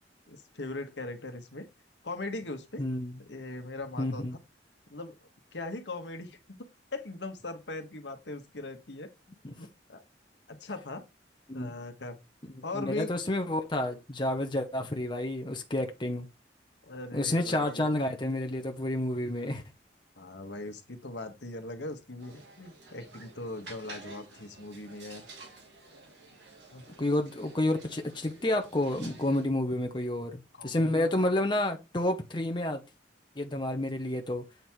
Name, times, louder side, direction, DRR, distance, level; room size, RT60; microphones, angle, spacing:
voice 1, 0.3-1.7 2.0-2.8 3.2-4.2 4.9-5.1 5.5-6.6 6.9-9.1 9.6-10.0 10.5-11.0 11.5-12.2 12.6-13.1 16.8-17.9 20.2-25.3 26.7-26.8 30.5-31.1, left 2 dB, 70° left, 1.3 m, -40 dB
voice 2, 2.8-3.1 4.0-4.4 9.4-9.5 11.5-11.7 12.4-16.3 17.1-19.6 27.0-32.8 33.4-34.4, left 1 dB, 25° left, 0.9 m, -30 dB
sound 1, 22.2-29.5, right 3 dB, 70° right, 2.7 m, -51 dB
8.1 x 3.6 x 4.5 m
head